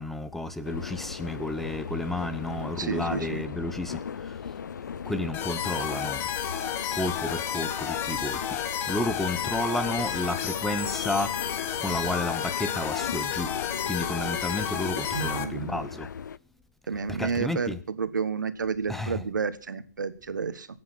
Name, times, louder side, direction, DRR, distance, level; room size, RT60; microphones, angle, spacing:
voice 1, 0.0-4.3 5.1-6.2 6.9-8.4 8.9-11.3 11.8-13.5 13.8-16.1 17.1-17.8 18.9-19.2, left 1 dB, ahead, 0.9 m, -31 dB
sound 1, 0.6-16.4, left 7 dB, 80° left, 0.6 m, -38 dB
voice 2, 2.8-3.4 15.1-15.8 16.9-20.7, right 5 dB, 85° right, 1.5 m, -31 dB
sound 2, 5.3-15.4, left 9 dB, 20° left, 1.2 m, -31 dB
20.0 x 8.6 x 5.9 m
hypercardioid pair, 145°, 10 cm